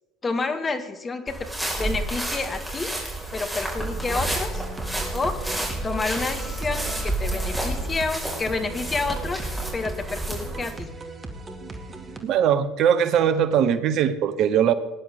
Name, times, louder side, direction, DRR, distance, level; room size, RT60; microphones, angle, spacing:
voice 1, 0.2-1.4 1.8-2.9 3.3-4.6 5.1-5.4 5.8-9.5 9.7-10.9, left 3 dB, 25° left, 8 dB, 1.8 m, -29 dB
sound 1, 1.3-10.7, right 1 dB, 5° right, 5.1 m, -30 dB
sound 2, 3.9-12.2, right 2 dB, 30° right, 2.2 m, -38 dB
voice 2, 12.2-14.7, right 8 dB, 55° right, 13 dB, 1.0 m, -20 dB
20.0 x 10.5 x 3.7 m, 1.1 s
hypercardioid pair, 65°, 0 cm